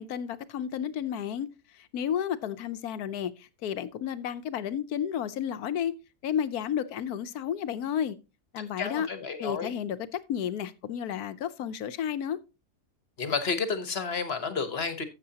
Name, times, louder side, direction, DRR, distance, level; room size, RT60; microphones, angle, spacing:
voice 1, 0.0-1.5 1.7-5.9 6.2-8.2 8.5-9.1 9.4-12.4, left 9 dB, 70° left, 1.2 m, -32 dB
voice 2, 8.8-9.7 13.2-15.0, left 5 dB, 45° left, 1.2 m, -31 dB
13.0 x 7.8 x 2.8 m
omnidirectional pair, 1.7 m